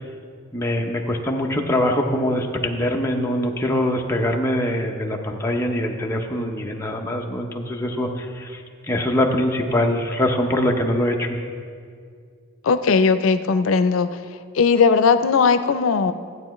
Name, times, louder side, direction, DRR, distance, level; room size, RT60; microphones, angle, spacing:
voice 1, 0.5-8.6 8.9-11.4, left 1 dB, 15° left, 1 dB, 0.6 m, -23 dB
voice 2, 12.6-14.1 14.5-16.1, left 5 dB, 85° left, 12 dB, 0.5 m, -18 dB
14.5 x 8.8 x 3.1 m, 2.1 s
head